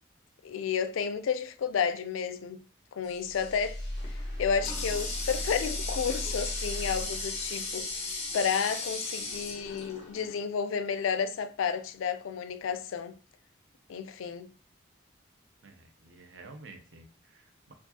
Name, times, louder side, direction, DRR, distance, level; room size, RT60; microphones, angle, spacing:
voice 1, 0.4-2.6 3.0-3.8 4.4-7.9 8.3-13.1 13.9-14.5, left 6 dB, 80° left, 0.4 m, -31 dB
sound 1, 3.0-8.4, left 1 dB, 15° left, 1.5 m, -38 dB
Water tap faucet, 4.0-10.5, left 3 dB, 35° left, 0.9 m, -37 dB
voice 2, 15.6-17.7, right 3 dB, 65° right, 0.6 m, -51 dB
4.5 x 2.4 x 2.8 m
head